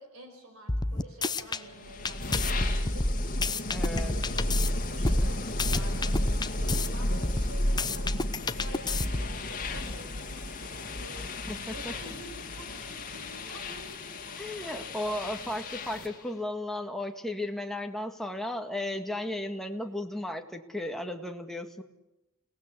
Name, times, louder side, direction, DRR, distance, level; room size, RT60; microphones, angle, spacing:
voice 1, 0.0-3.2 3.9-4.6 4.9-11.2 11.7-14.8 15.3-15.6, right 1 dB, 70° right, 5 dB, 5.3 m, -48 dB
sound 1, 0.7-1.6 2.0-4.7 5.0-6.9 7.2-9.4, left 3 dB, 20° left, 0.8 m, -30 dB
sound 2, 1.6-16.2, left 1 dB, 40° left, 2.5 m, -32 dB
voice 2, 3.7-4.1 11.5-11.9 14.4-21.8, left 1 dB, ahead, 3 dB, 1.9 m, -35 dB
29.0 x 18.5 x 8.4 m, 0.96 s
head